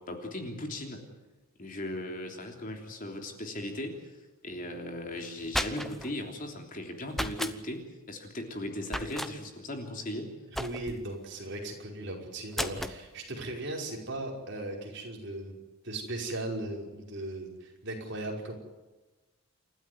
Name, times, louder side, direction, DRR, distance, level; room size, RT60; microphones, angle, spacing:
voice 1, 0.1-1.0 1.6-3.9 4.4-7.8 8.1-10.3 12.7-12.9, left 1 dB, 40° left, 3 dB, 3.3 m, -37 dB
sound 1, 5.2-6.1 7.1-7.6 8.9-9.3 10.5-11.1 12.5-13.0, equal, ahead, 0.9 m, -34 dB
voice 2, 10.6-15.6 15.8-18.6, right 1 dB, 50° right, 0 dB, 5.3 m, -37 dB
29.0 x 13.0 x 9.6 m, 1.1 s
head